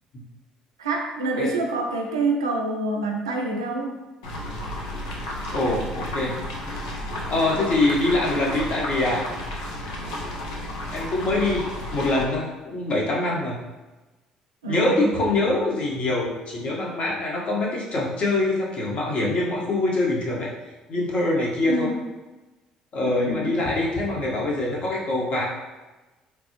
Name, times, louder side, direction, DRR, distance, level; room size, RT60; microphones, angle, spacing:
voice 1, 0.8-4.0 14.6-15.1 21.7-21.9 23.1-23.5, right 2 dB, 90° right, 1 dB, 0.3 m, -27 dB
sound 1, 4.2-12.2, left 1 dB, 80° left, 0.5 m, -32 dB
voice 2, 5.5-6.4 7.3-9.3 10.9-13.6 14.7-20.5 20.9-21.9 22.9-25.4, left 2 dB, 50° left, -3 dB, 0.9 m, -24 dB
3.2 x 2.0 x 2.9 m, 1.1 s
hypercardioid pair, 55°, 3 cm